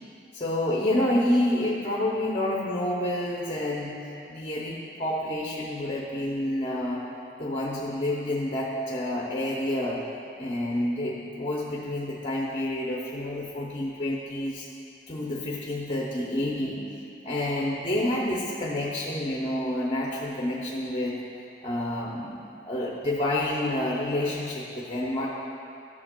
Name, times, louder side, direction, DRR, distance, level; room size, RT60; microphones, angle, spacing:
voice 1, 0.3-4.0 4.3-7.0 7.4-10.0 10.4-14.7 15.1-16.8 17.2-21.2 21.6-25.3, left 1 dB, 35° left, -3 dB, 0.7 m, -28 dB
12.5 x 7.5 x 2.2 m, 2.7 s
head